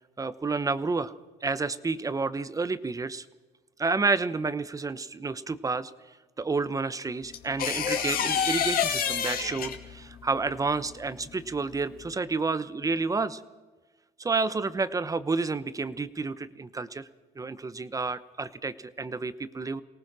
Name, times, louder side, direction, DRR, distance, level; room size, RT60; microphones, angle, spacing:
voice 1, 0.2-1.1 1.4-3.2 3.8-5.9 6.4-13.4 14.2-17.1 17.4-19.8, right 4 dB, 20° right, 15 dB, 0.9 m, -30 dB
sound 1, 7.3-10.1 11.7-12.0, left 8 dB, 60° left, 2.4 m, -27 dB
24.0 x 18.5 x 6.2 m, 1.3 s
cardioid pair, 110°, 17 cm